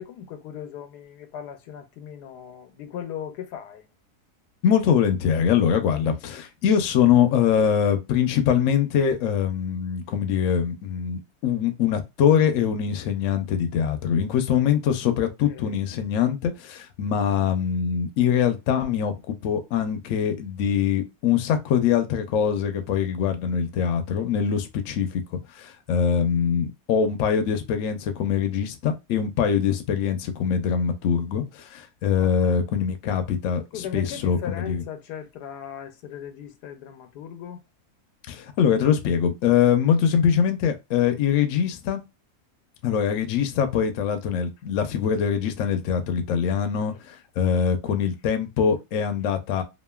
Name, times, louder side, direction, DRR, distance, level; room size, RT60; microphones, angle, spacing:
voice 1, 0.0-3.9 15.5-15.8 32.2-32.6 33.7-37.6, left 9 dB, 90° left, 1.2 m, -38 dB
voice 2, 4.6-25.2 25.6-34.8 38.3-42.0 42.8-49.6, left 8 dB, 65° left, 0.8 m, -23 dB
2.9 x 2.5 x 2.3 m
omnidirectional pair, 1.7 m